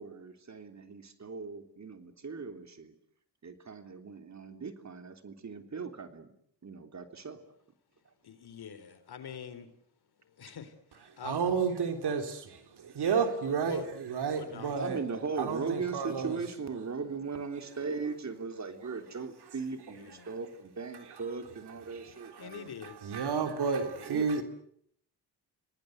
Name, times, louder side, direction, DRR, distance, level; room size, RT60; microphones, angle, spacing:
voice 1, 0.0-3.0 3.4-6.3 6.6-7.4 8.1-8.2 14.8-22.7 24.0-24.4, right 5 dB, 40° right, 3.4 m, -38 dB
voice 2, 8.2-9.7 10.4-11.4 13.6-13.9 14.3-14.8 19.9-20.3 22.4-23.0, left 7 dB, 65° left, 3.7 m, -45 dB
voice 3, 11.2-15.0 15.4-16.4 22.8-24.4, right 5 dB, 70° right, 3.7 m, -31 dB
27.0 x 19.0 x 7.9 m
cardioid pair, 70°, 41 cm